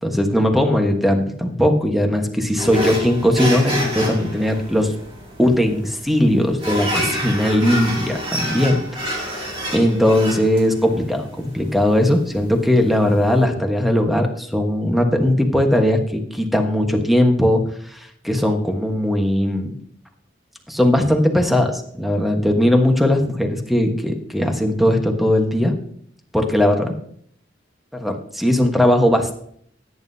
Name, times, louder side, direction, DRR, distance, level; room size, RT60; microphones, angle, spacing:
voice 1, 0.0-4.9 5.4-8.8 9.0-17.6 17.9-19.7 20.7-25.7 26.3-26.9 27.9-29.4, left 1 dB, ahead, 3 dB, 1.3 m, -19 dB
sound 1, 2.6-13.4, equal, 35° right, 3.8 m, -28 dB
16.5 x 9.6 x 2.8 m, 0.64 s
head